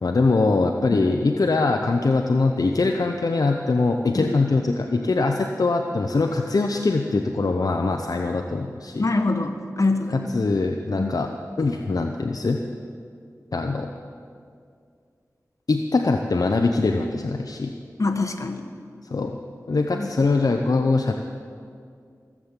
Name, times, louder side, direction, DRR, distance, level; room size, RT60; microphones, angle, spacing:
voice 1, 0.0-9.1 10.1-11.3 11.6-12.6 13.5-13.9 15.7-17.8 19.1-19.4 19.7-21.1, left 3 dB, 75° left, 3 dB, 0.7 m, -22 dB
voice 2, 9.0-10.3 11.0-11.1 18.0-18.6 19.9-20.1, left 3 dB, 55° left, 5 dB, 1.3 m, -24 dB
16.5 x 7.4 x 8.2 m, 2.2 s
wide cardioid pair, 55°, 6 cm